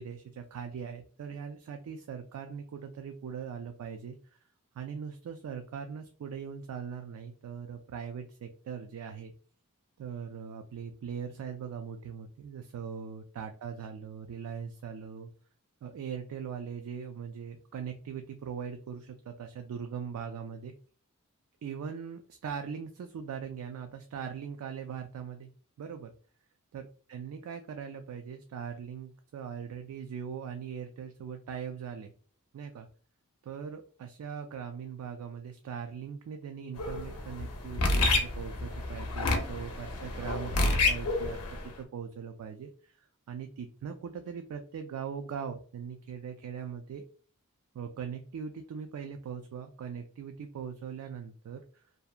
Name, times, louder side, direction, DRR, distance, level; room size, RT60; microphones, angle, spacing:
voice 1, 0.0-4.4 4.7-9.3 10.0-15.3 15.8-20.7 21.6-25.5 25.8-26.1 26.7-32.1 32.5-32.9 33.4-47.0 47.7-51.8, right 7 dB, 75° right, 6 dB, 0.3 m, -40 dB
sound 1, 36.8-41.7, left 2 dB, 85° left, 0.6 m, -29 dB
2.6 x 2.1 x 2.3 m, 0.42 s
head